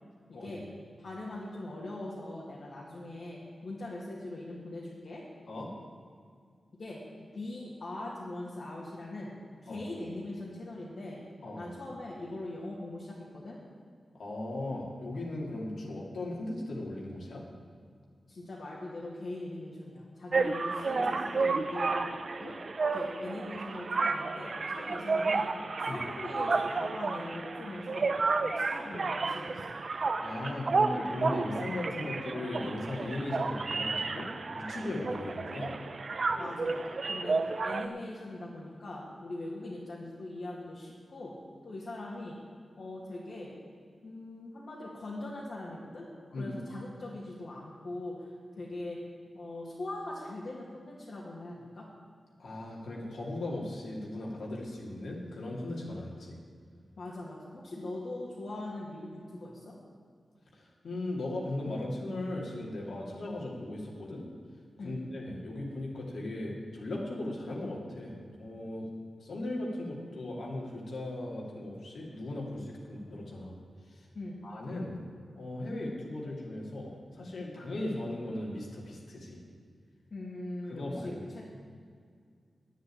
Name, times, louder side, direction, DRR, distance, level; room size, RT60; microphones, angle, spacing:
voice 1, 0.3-0.6 1.0-5.2 6.8-9.3 9.6-11.2 11.6-13.6 18.3-22.0 22.4-22.6 22.9-25.5 25.8-28.1 28.4-29.6 36.4-41.4 41.6-42.4 42.8-43.5 44.0-46.1 46.4-49.0 49.3-51.9 57.0-59.7 64.8-65.0 74.1-74.4 80.1-81.4, left 2 dB, 65° left, -5 dB, 2.1 m, -41 dB
voice 2, 14.1-17.4 25.9-26.0 30.2-34.3 34.6-35.8 46.3-46.6 52.4-56.4 60.5-64.3 64.8-68.1 68.4-68.9 69.2-73.6 73.9-74.1 74.4-75.0 75.4-79.4 80.7-81.4, left 1 dB, 80° left, -3 dB, 2.4 m, -37 dB
sound 1, 20.3-37.9, right 3 dB, 55° right, 0.6 m, -32 dB
9.3 x 7.9 x 8.9 m, 2.1 s
wide cardioid pair, 80°, 0 cm